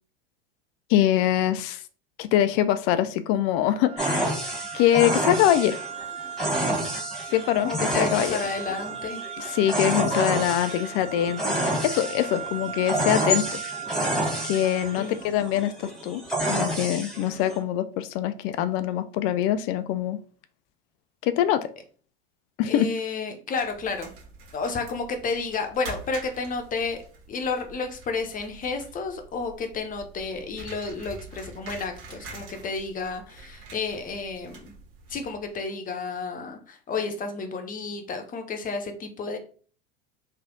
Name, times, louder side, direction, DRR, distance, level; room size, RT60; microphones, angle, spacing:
voice 1, 0.9-1.8 2.2-4.3 4.7-5.8 7.3-8.4 9.4-13.6 14.4-16.2 16.5-20.2 21.2-21.7 22.6-22.9, left 11 dB, 50° left, 12 dB, 0.4 m, -24 dB
sound 1, 3.8-15.3, right 8 dB, 20° right, 0.7 m, -38 dB
sound 2, 4.0-17.6, right 1 dB, ahead, 1.5 m, -29 dB
voice 2, 7.6-9.3 14.9-15.2 22.6-24.1 24.5-27.0 27.3-34.7 35.1-39.4, left 4 dB, 30° left, 5 dB, 0.8 m, -31 dB
sound 3, 23.5-35.6, right 4 dB, 60° right, 1.5 m, -45 dB
3.3 x 2.4 x 3.7 m, 0.42 s
hypercardioid pair, 85°, 30 cm